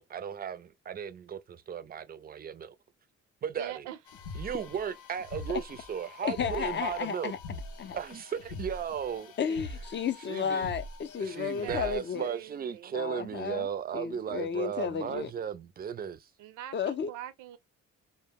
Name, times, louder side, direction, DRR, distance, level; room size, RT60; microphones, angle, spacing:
voice 1, 0.0-2.7 3.4-3.9 4.3-7.3 7.9-9.3 10.3-10.7 11.2-16.3, right 8 dB, 30° right, 0.4 m, -36 dB
voice 2, 3.6-4.0 9.5-9.6 11.6-11.9 12.2-13.0 16.4-17.6, right 11 dB, 85° right, 0.6 m, -43 dB
sound 1, 4.1-12.3, left 3 dB, 85° left, 0.7 m, -44 dB
voice 3, 6.2-8.0 9.4-12.3 12.9-13.7 13.9-15.3 16.7-17.1, left 7 dB, 40° left, 0.4 m, -33 dB
2.1 x 2.0 x 3.5 m
cardioid pair, 90°, 30 cm